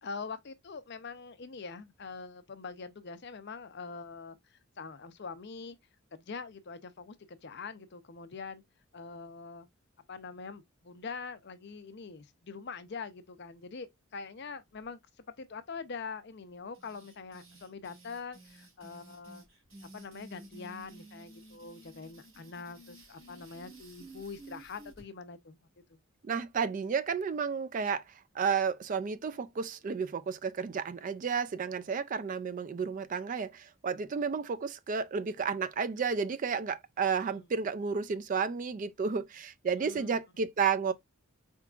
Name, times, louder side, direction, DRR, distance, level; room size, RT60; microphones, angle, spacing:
voice 1, 0.0-5.8 6.1-8.6 8.9-9.7 10.1-19.4 19.8-25.6 25.9-26.0 37.3-37.4 39.8-40.1, left 4 dB, 55° left, 0.6 m, -44 dB
Build up, 16.7-25.0, right 2 dB, 75° right, 3.3 m, -53 dB
voice 2, 26.2-28.0 28.3-40.9, right 6 dB, 40° right, 0.3 m, -32 dB
4.5 x 3.6 x 2.4 m
head